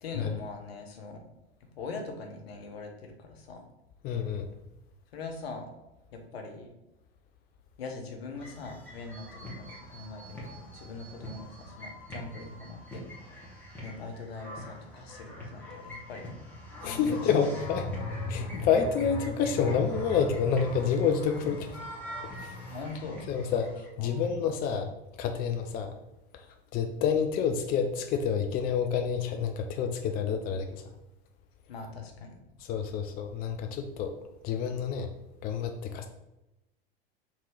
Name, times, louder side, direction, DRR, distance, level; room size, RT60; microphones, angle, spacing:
voice 1, 0.0-1.2 1.8-3.6 5.1-5.7 6.1-6.7 7.8-10.4 10.7-13.0 13.8-16.3 16.8-17.2 22.7-23.2 24.0-24.3 31.7-32.4, left 3 dB, 75° left, 3 dB, 1.0 m, -42 dB
voice 2, 4.0-4.5 16.8-17.9 18.3-21.7 22.4-22.5 23.3-24.9 25.2-25.9 26.3-26.4 26.7-30.8 32.6-34.2 34.4-35.1 35.4-36.1, left 6 dB, 30° left, 6 dB, 0.4 m, -28 dB
sound 1, 8.3-23.9, left 1 dB, 5° left, 1.5 m, -41 dB
3.6 x 2.9 x 4.5 m, 0.96 s
hypercardioid pair, 90°, 31 cm